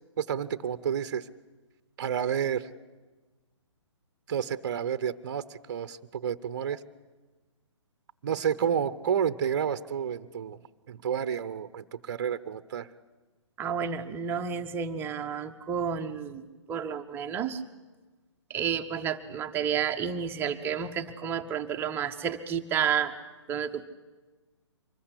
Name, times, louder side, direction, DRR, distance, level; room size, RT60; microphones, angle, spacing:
voice 1, 0.2-1.3 2.0-2.7 4.3-6.8 8.2-10.6 10.9-12.9, right 8 dB, 40° right, 13 dB, 0.9 m, -30 dB
voice 2, 13.6-16.4 16.7-17.6 18.5-23.2 23.5-23.8, right 7 dB, 15° right, 7 dB, 1.0 m, -31 dB
25.0 x 21.0 x 8.4 m, 1.2 s
figure-of-eight pair, 130°, 16 cm